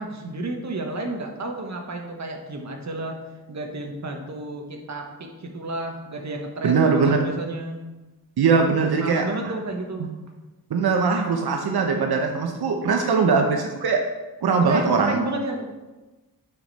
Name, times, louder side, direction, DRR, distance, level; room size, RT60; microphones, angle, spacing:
voice 1, 0.0-3.2 3.5-7.9 8.6-10.2 14.6-15.6, right 2 dB, 45° right, 3 dB, 1.3 m, -31 dB
voice 2, 6.6-7.2 8.4-9.2 10.7-14.0 14.4-15.2, right 5 dB, 85° right, 3 dB, 0.9 m, -21 dB
9.5 x 5.2 x 4.1 m, 1.1 s
wide cardioid pair, 100°, 37 cm